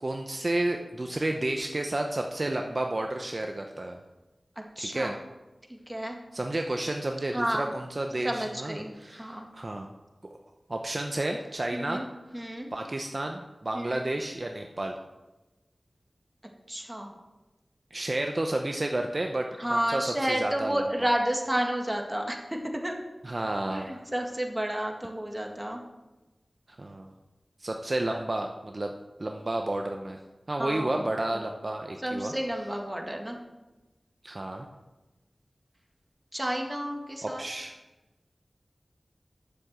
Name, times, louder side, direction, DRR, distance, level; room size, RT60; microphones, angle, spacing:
voice 1, 0.0-4.0 4.8-5.1 6.3-9.9 10.7-12.0 12.3-12.4 12.7-15.0 17.9-20.8 23.2-24.0 26.7-27.1 27.6-28.9 29.2-30.2 30.5-32.3 34.2-34.7 37.2-37.7, right 1 dB, 45° right, 3 dB, 0.8 m, -31 dB
voice 2, 4.8-5.2 5.7-6.2 7.3-7.7 8.2-9.5 11.7-12.1 12.3-12.7 13.7-14.1 16.7-17.1 19.6-23.1 23.7-25.8 28.1-28.2 30.6-31.0 32.0-33.4 36.3-37.4, right 1 dB, 10° right, 1 dB, 1.9 m, -31 dB
9.7 x 7.2 x 7.5 m, 1.1 s
wide cardioid pair, 70°, 0 cm